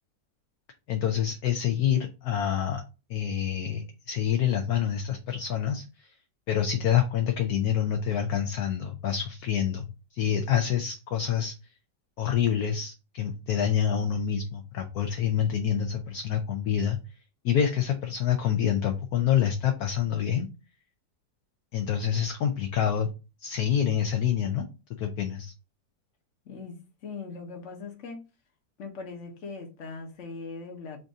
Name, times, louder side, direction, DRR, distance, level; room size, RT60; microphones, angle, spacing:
voice 1, 0.9-2.8 3.1-5.9 6.5-11.5 12.2-17.0 17.4-20.5 21.7-23.1 23.4-24.6 24.9-25.5, left 9 dB, 65° left, 5 dB, 1.0 m, -27 dB
voice 2, 26.4-28.2 28.8-31.0, left 4 dB, 50° left, 3 dB, 1.3 m, -40 dB
5.2 x 2.6 x 3.6 m, 0.30 s
omnidirectional pair, 1.9 m